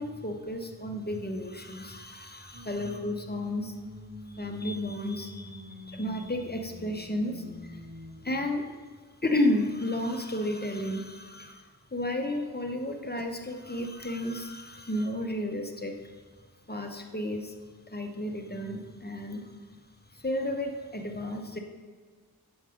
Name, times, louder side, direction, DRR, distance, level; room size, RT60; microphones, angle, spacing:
voice 1, 0.0-3.8 4.3-7.8 8.2-8.7 9.2-11.6 11.9-16.0 16.7-17.5 17.9-19.5 20.2-21.6, left 1 dB, 25° left, 4 dB, 0.9 m, -32 dB
sound 1, 2.5-8.4, equal, 50° right, 1.4 m, -46 dB
7.9 x 5.4 x 5.0 m, 1.5 s
wide cardioid pair, 40°, 39 cm